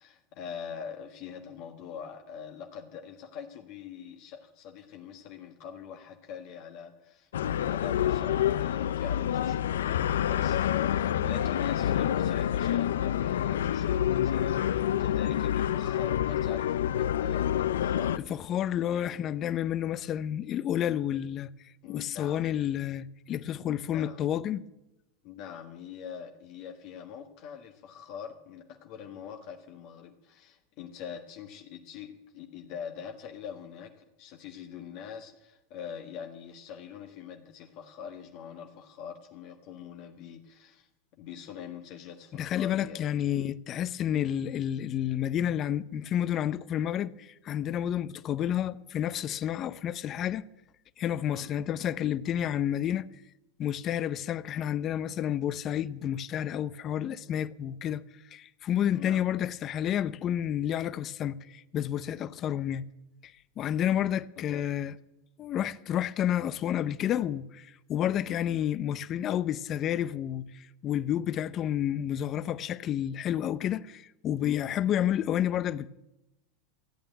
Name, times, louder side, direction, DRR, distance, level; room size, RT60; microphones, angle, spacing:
voice 1, 0.0-7.3 7.6-18.1 18.8-19.2 21.8-22.4 23.7-24.2 25.2-40.9 41.2-43.5 51.1-51.5 58.9-59.2 64.4-64.6, left 8 dB, 55° left, 1.5 m, -44 dB
sound 1, 7.3-18.2, left 10 dB, 90° left, 0.5 m, -27 dB
voice 2, 18.2-21.5 21.9-24.7 42.3-50.4 51.0-53.1 53.6-58.0 58.3-62.9 63.2-64.9 65.4-75.9, left 10 dB, 35° left, 0.6 m, -30 dB
14.5 x 9.0 x 9.1 m
supercardioid pair, 125°, 0 cm